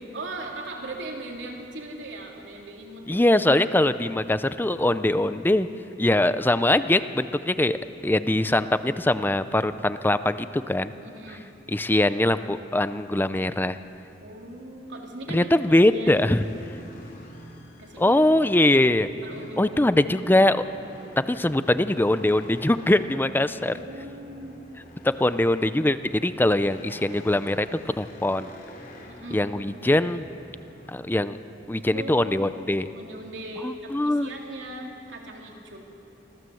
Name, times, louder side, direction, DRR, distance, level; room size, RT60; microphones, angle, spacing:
voice 1, 0.1-3.4 11.0-11.5 14.2-16.2 17.8-18.2 19.2-20.0 23.6-24.6 29.1-29.8 31.7-32.6 32.9-35.8, right 1 dB, 90° right, 0 dB, 3.2 m, -39 dB
voice 2, 3.1-5.7 6.0-10.9 11.7-13.8 15.3-16.5 18.0-19.1 19.6-20.6 21.2-23.7 25.0-27.7 28.0-28.5 29.3-30.3 30.9-31.4 31.7-32.9 33.6-34.3, left 1 dB, 10° left, 12 dB, 0.5 m, -22 dB
sound 1, 16.1-30.9, equal, 50° left, 3.2 m, -47 dB
25.0 x 16.0 x 7.8 m, 2.9 s
head